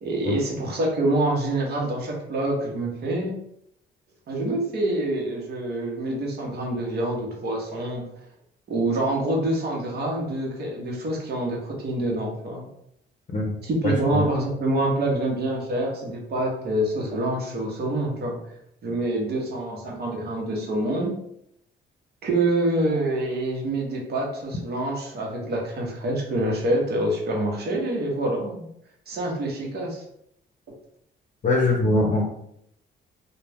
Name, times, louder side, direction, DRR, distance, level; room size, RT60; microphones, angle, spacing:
voice 1, 0.0-3.4 4.3-8.0 8.7-12.7 13.6-18.4 18.8-21.1 22.2-28.7 29.1-30.0, right 1 dB, 55° right, -1 dB, 0.9 m, -26 dB
voice 2, 13.8-14.2 31.4-32.2, left 2 dB, 40° left, -1 dB, 0.6 m, -22 dB
2.4 x 2.2 x 3.3 m, 0.74 s
cardioid pair, 90°, 20 cm